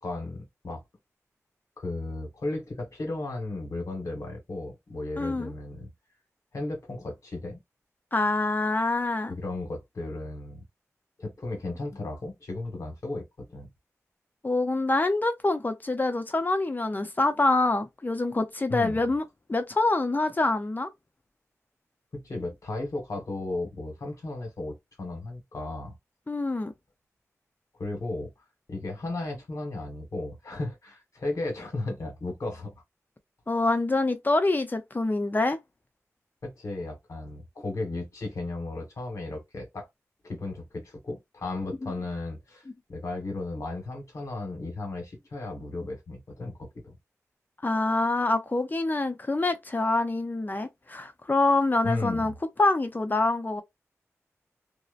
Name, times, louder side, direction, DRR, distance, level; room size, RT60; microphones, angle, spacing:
voice 1, 0.0-0.8 1.8-5.9 6.5-7.6 9.3-10.6 11.2-13.7 18.7-19.0 22.1-25.9 27.8-28.3 28.7-32.7 36.4-39.9 40.2-42.6 42.9-47.0 51.8-52.3, left 2 dB, 70° left, 1.4 m, -35 dB
voice 2, 5.2-5.5 8.1-9.4 14.4-19.2 19.5-20.9 26.3-26.7 33.5-35.6 41.8-41.9 47.6-52.3 52.6-53.6, left 2 dB, 35° left, 0.6 m, -26 dB
2.8 x 2.0 x 2.4 m
cardioid pair, 60°, 6 cm